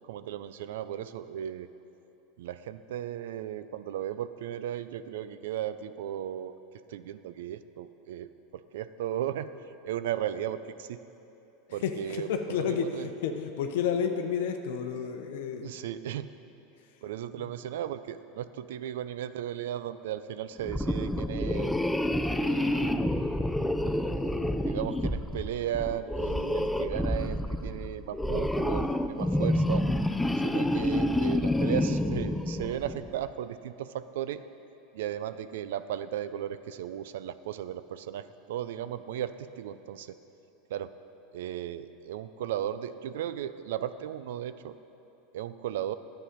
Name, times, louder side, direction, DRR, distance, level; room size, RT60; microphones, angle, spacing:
voice 1, 0.0-1.7 2.4-6.6 6.9-8.3 8.7-9.5 9.8-11.0 11.7-13.1 15.6-16.3 17.0-21.8 22.3-23.1 23.8-29.8 30.4-34.4 34.9-40.2 40.7-40.9 41.3-44.7 45.3-45.9, right 11 dB, 80° right, 13 dB, 0.4 m, -36 dB
voice 2, 11.8-15.7 17.4-17.5, left 7 dB, 75° left, 5 dB, 0.7 m, -31 dB
sound 1, 20.6-33.1, left 1 dB, 5° left, 0.4 m, -28 dB
10.0 x 7.8 x 5.1 m, 3.0 s
supercardioid pair, 115°, 0 cm